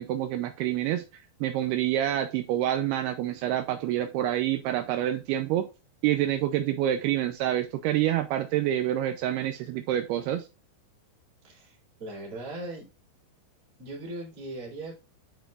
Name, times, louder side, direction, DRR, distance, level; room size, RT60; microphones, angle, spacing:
voice 1, 0.0-5.7 6.0-10.5, right 12 dB, 85° right, 2.3 m, -27 dB
voice 2, 11.4-12.9 13.8-15.0, right 2 dB, 35° right, 3.4 m, -39 dB
9.0 x 5.6 x 2.4 m
omnidirectional pair, 5.3 m